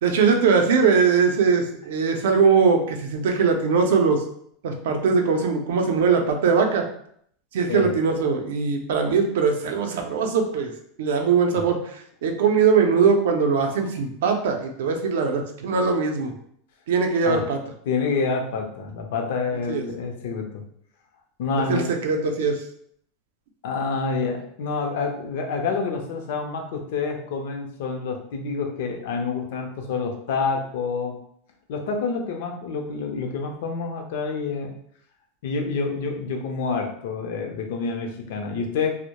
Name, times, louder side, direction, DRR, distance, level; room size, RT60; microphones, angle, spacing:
voice 1, 0.0-4.2 4.6-6.8 7.5-10.7 11.0-11.8 12.2-16.3 16.9-17.6 19.7-19.8 21.7-22.6, right 5 dB, 90° right, 3 dB, 0.4 m, -21 dB
voice 2, 17.9-20.6 21.4-21.8 23.6-31.2 31.7-34.7 35.4-38.9, left 4 dB, 70° left, 3 dB, 0.5 m, -27 dB
2.1 x 2.0 x 2.8 m, 0.67 s
supercardioid pair, 160°, 0 cm